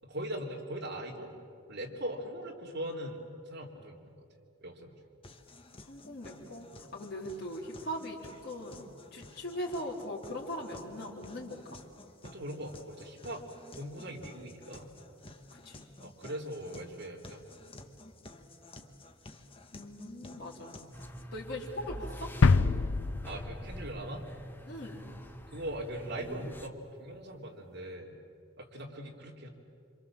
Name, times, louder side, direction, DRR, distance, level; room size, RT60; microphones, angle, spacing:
voice 1, 0.0-1.3 1.7-4.2 4.6-5.0 12.2-13.5 13.7-14.9 16.0-17.5 23.2-24.2 25.5-28.2 28.6-29.5, right 1 dB, 60° right, -1 dB, 3.4 m, -40 dB
sound 1, 5.2-21.2, left 2 dB, 30° left, 1.4 m, -52 dB
voice 2, 5.9-11.6 15.5-15.9 19.7-20.7 21.3-22.3 24.7-25.0, equal, 55° left, -5 dB, 3.8 m, -40 dB
sound 2, 20.9-26.7, equal, 10° left, 1.1 m, -43 dB
sound 3, 22.4-24.3 24.5-24.6, left 4 dB, 75° left, 0.5 m, -26 dB
27.0 x 26.0 x 7.5 m, 2.4 s
head